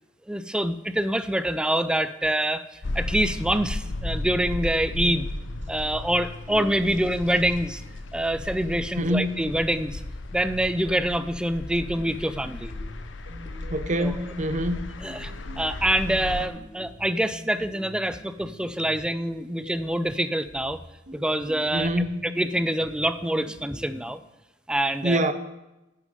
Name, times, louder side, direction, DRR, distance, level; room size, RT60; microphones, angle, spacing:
voice 1, 0.3-5.3 5.7-7.8 8.1-10.0 10.3-12.7 14.0-14.1 15.0-20.8 21.1-21.9 22.2-24.2 24.7-25.3, right 1 dB, 5° right, 12 dB, 0.4 m, -26 dB
sound 1, 2.8-16.5, left 2 dB, 85° left, 0.7 m, -35 dB
voice 2, 8.9-9.3 13.7-14.8 21.7-22.2 25.0-25.3, equal, 40° right, 11 dB, 0.7 m, -25 dB
sound 2, 12.3-14.1 14.4-20.1 20.4-24.0, equal, 65° right, 1.7 m, -45 dB
10.5 x 6.6 x 5.2 m, 0.97 s
head